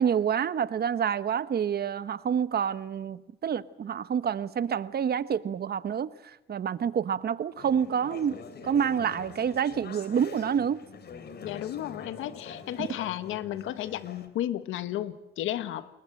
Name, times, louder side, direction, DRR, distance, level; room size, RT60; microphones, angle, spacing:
voice 1, 0.0-8.4 8.6-10.8 12.8-12.9, right 8 dB, 50° right, 1.2 m, -28 dB
Conversation / Chatter, 7.6-14.3, left 5 dB, 55° left, 3.4 m, -45 dB
voice 2, 11.4-15.9, left 12 dB, 85° left, 1.5 m, -33 dB
29.0 x 21.0 x 7.9 m
cardioid pair, 90°, 20 cm